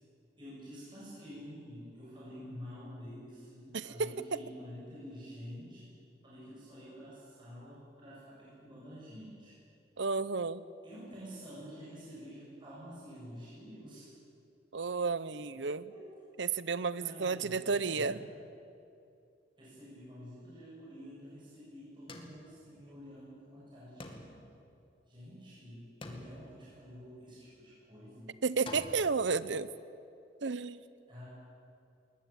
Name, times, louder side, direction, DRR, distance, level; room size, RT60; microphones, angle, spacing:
voice 1, 0.4-5.9 6.2-9.5 10.8-14.1 15.9-16.1 17.0-18.2 19.6-24.5 25.1-28.3 31.1-31.2, equal, 25° right, -8 dB, 7.7 m, -49 dB
voice 2, 3.7-4.1 10.0-10.6 14.7-15.9 16.4-18.2 28.4-29.7 30.4-30.8, right 4 dB, 75° right, 16 dB, 0.8 m, -32 dB
sound 1, 22.1-23.3 24.0-25.4 26.0-27.4 28.7-29.2, left 1 dB, 30° left, 2.3 m, -49 dB
21.0 x 20.5 x 8.8 m, 2.6 s
head